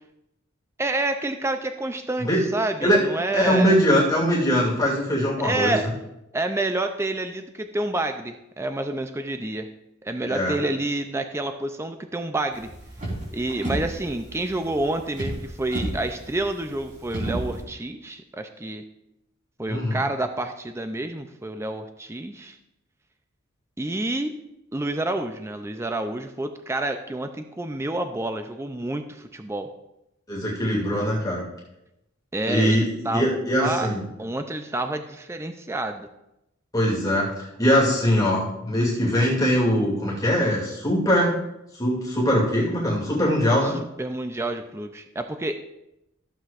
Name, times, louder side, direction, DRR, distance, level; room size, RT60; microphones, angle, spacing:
voice 1, 0.8-3.8 5.4-5.9 6.3-9.7 10.0-12.7 13.3-18.8 19.6-22.6 23.8-24.3 24.7-29.7 32.3-33.3 33.6-33.9 34.2-36.1 43.6-43.7 44.0-45.5, right 2 dB, 15° right, 7 dB, 0.4 m, -28 dB
voice 2, 3.3-5.7 10.3-10.6 19.7-20.0 30.3-31.4 32.5-34.0 36.7-41.4 41.8-43.8, equal, 20° left, -5 dB, 2.4 m, -22 dB
sound 1, 12.5-17.6, right 1 dB, 40° right, 3.9 m, -33 dB
14.5 x 7.7 x 2.5 m, 0.88 s
head